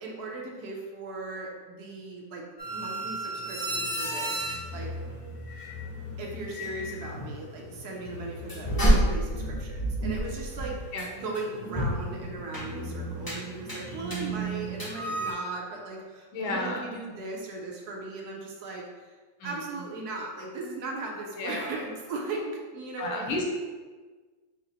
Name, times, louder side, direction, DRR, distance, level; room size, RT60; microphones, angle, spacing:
voice 1, 0.0-4.9 6.2-19.1 19.4-23.5, right 3 dB, 65° right, -1 dB, 1.0 m, -38 dB
sound 1, 2.6-15.3, right 1 dB, 35° left, 0.3 m, -31 dB
voice 2, 16.3-16.9 19.4-19.5 21.4-21.7 23.0-23.5, left 2 dB, 85° left, -1 dB, 1.6 m, -31 dB
5.0 x 2.0 x 4.0 m, 1.4 s
omnidirectional pair, 2.1 m